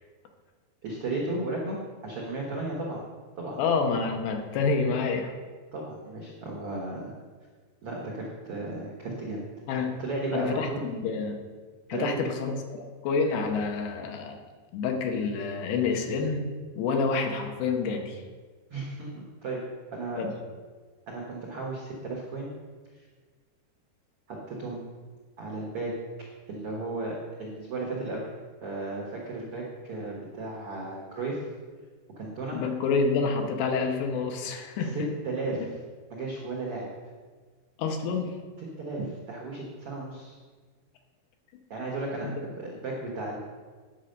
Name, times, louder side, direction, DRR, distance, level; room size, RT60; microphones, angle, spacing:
voice 1, 0.8-3.0 3.4-3.6 5.7-7.1 7.8-9.4 9.7-10.8 11.9-12.3 18.7-19.6 19.9-20.2 21.1-22.5 22.9-23.1 24.3-24.8 25.4-25.9 26.5-28.3 28.6-31.4 32.1-32.6 34.8-35.7 36.1-36.9 38.6-40.4 41.7-43.4, right 2 dB, 75° right, -3 dB, 1.3 m, -34 dB
voice 2, 3.6-5.3 9.7-10.0 10.3-11.4 11.9-14.4 14.7-16.5 16.8-18.2 20.2-20.3 32.5-34.9 37.8-38.3 42.2-42.3, left 4 dB, 85° left, 3 dB, 3.1 m, -28 dB
10.0 x 5.2 x 6.6 m, 1.5 s
omnidirectional pair, 4.8 m